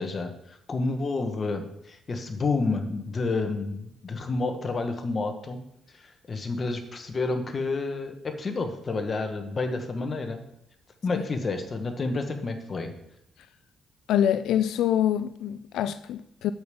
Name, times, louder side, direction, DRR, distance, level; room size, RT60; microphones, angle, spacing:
voice 1, 0.0-5.6 6.0-10.4 11.0-12.9, left 3 dB, 30° left, 1.2 m, -30 dB
voice 2, 14.1-16.5, left 10 dB, 85° left, 0.3 m, -25 dB
7.9 x 5.1 x 7.0 m
cardioid pair, 150°, 0 cm